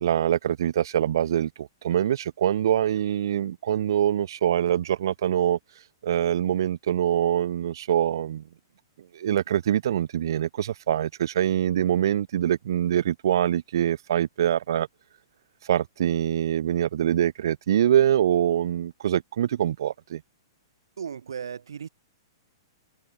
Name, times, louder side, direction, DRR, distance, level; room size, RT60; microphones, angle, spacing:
voice 1, 0.0-5.6 6.0-8.4 9.1-14.9 15.6-20.2, right 10 dB, 70° right, 0.6 m, -24 dB
voice 2, 21.0-21.9, right 7 dB, 90° right, 1.9 m, -36 dB
hypercardioid pair, 145°, 2 cm